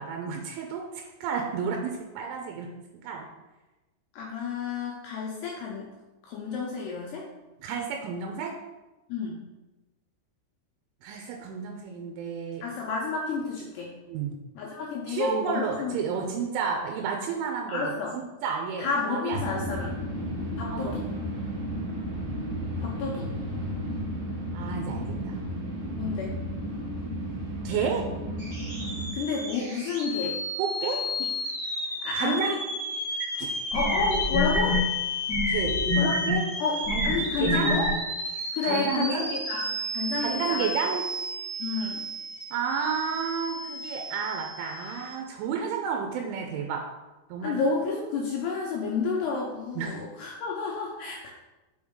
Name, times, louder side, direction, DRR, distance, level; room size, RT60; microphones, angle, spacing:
voice 1, 0.0-2.7 3.0-3.3 7.6-8.5 11.0-12.6 14.1-14.4 15.1-19.5 20.7-20.9 24.5-25.4 27.6-28.1 30.6-31.1 32.2-32.6 33.4-33.6 35.5-36.5 36.9-37.8 38.6-39.3 40.2-41.0 42.5-46.8 47.3-47.6 49.8-50.0, right 6 dB, 85° right, 2 dB, 3.1 m, -31 dB
voice 2, 4.1-5.9 6.2-7.3 9.1-9.4 12.6-14.0 14.6-15.9 17.7-18.1 18.8-20.0 20.6-21.1 22.8-23.3 26.0-26.4 29.1-30.4 31.2-31.3 32.0-32.6 33.7-34.8 35.9-36.1 36.6-36.8 37.0-37.9 38.5-40.7 41.6-42.0 47.4-51.3, left 4 dB, 80° left, -2 dB, 2.5 m, -30 dB
sound 1, 19.3-29.1, equal, 55° right, 2.0 m, -33 dB
sound 2, 28.4-45.1, left 1 dB, 30° right, 1.2 m, -33 dB
sound 3, 33.2-33.3 33.7-34.8 35.3-36.3 36.8-37.9, left 1 dB, 55° left, 1.1 m, -26 dB
6.1 x 5.6 x 3.6 m, 1.1 s
omnidirectional pair, 5.5 m